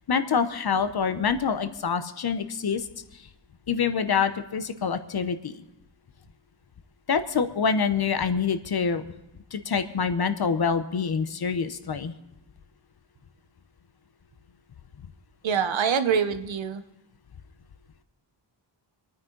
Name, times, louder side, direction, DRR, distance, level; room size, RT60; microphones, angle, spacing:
voice 1, 0.1-2.9 3.7-5.6 7.1-9.0 9.5-12.1, left 6 dB, 55° left, 10 dB, 0.9 m, -26 dB
voice 2, 15.4-16.8, right 7 dB, 85° right, 9 dB, 1.0 m, -25 dB
24.5 x 9.5 x 3.9 m, 0.90 s
wide cardioid pair, 115°, 45 cm